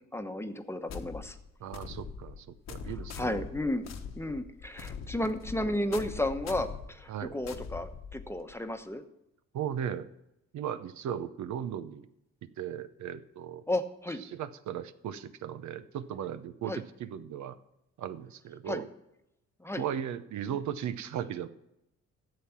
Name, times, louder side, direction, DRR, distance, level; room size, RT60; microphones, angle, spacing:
voice 1, 0.1-1.4 3.2-3.8 4.2-9.0 13.7-14.2 16.7-16.8 18.6-18.8 19.6-19.9, left 1 dB, 10° left, 7 dB, 1.0 m, -33 dB
sound 1, 0.9-8.5, left 6 dB, 60° left, 1.2 m, -42 dB
voice 2, 1.6-3.5 7.1-7.4 9.5-10.1 10.5-12.1 12.6-13.6 14.2-17.6 18.0-18.9 19.8-21.5, right 9 dB, 70° right, 12 dB, 0.7 m, -37 dB
12.0 x 7.6 x 5.8 m, 0.85 s
cardioid pair, 90°, 30 cm